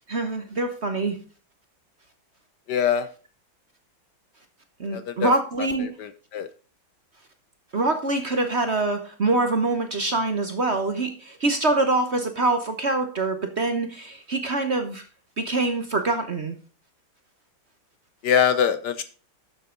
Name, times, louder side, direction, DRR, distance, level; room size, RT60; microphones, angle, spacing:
voice 1, 0.1-1.2 4.8-5.9 7.7-15.0 15.4-16.6, right 2 dB, 40° right, 7 dB, 1.1 m, -25 dB
voice 2, 2.7-3.1 4.9-5.3 6.0-6.5 18.2-19.0, left 8 dB, 65° left, 12 dB, 1.2 m, -23 dB
11.5 x 7.5 x 3.8 m, 0.36 s
omnidirectional pair, 2.2 m